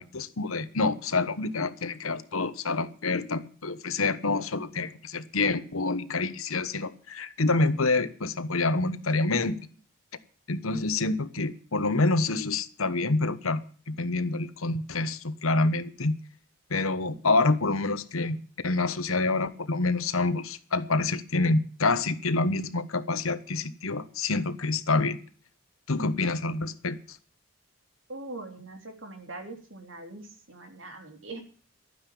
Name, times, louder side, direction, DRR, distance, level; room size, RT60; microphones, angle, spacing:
voice 1, 0.0-9.6 10.5-16.2 16.7-18.4 18.6-25.2 25.9-27.2, left 3 dB, 85° left, 1.2 m, -27 dB
voice 2, 28.1-31.4, right 2 dB, 65° right, 3.5 m, -42 dB
12.0 x 9.6 x 8.6 m
head